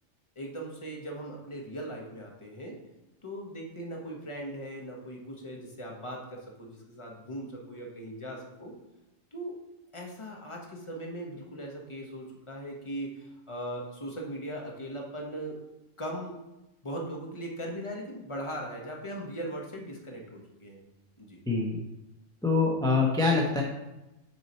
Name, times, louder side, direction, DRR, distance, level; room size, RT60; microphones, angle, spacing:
voice 1, 0.4-2.8 3.2-8.7 9.3-9.5 9.9-15.6 16.0-16.4 16.8-20.8 21.2-21.4, right 1 dB, 25° left, -1 dB, 1.1 m, -39 dB
voice 2, 21.5-21.8 22.4-23.6, left 4 dB, 5° left, -2 dB, 0.6 m, -25 dB
6.5 x 4.6 x 4.4 m, 0.98 s
omnidirectional pair, 1.4 m